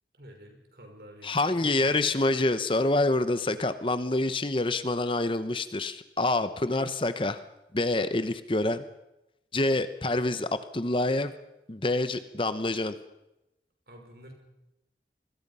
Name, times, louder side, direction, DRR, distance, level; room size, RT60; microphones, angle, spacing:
voice 1, 0.2-2.1 6.7-6.9 10.0-10.2 13.9-14.3, right 1 dB, 60° right, 4 dB, 5.1 m, -50 dB
voice 2, 1.2-7.4 7.7-8.8 9.5-10.5 10.7-11.3 11.7-13.0, left 2 dB, 30° left, 12 dB, 0.9 m, -27 dB
26.0 x 21.0 x 5.6 m, 0.92 s
head